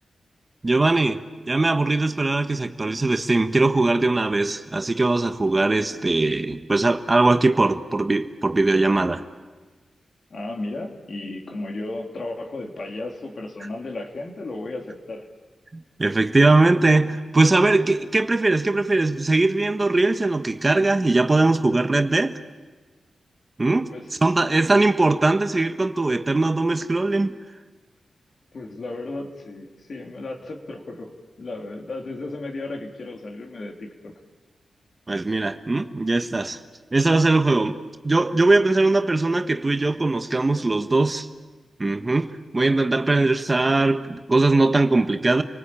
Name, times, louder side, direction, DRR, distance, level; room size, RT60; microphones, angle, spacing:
voice 1, 0.6-1.2 1.5-9.2 16.0-22.4 23.6-23.9 24.2-27.3 35.1-36.6 36.9-37.8 38.0-41.3 41.8-45.4, right 2 dB, 30° right, 8 dB, 1.4 m, -20 dB
voice 2, 10.3-15.3 23.9-24.2 24.5-24.8 28.5-31.1 31.4-34.1, left 2 dB, 55° left, 2 dB, 3.4 m, -34 dB
30.0 x 19.5 x 8.8 m, 1.3 s
cardioid pair, 65°, 0 cm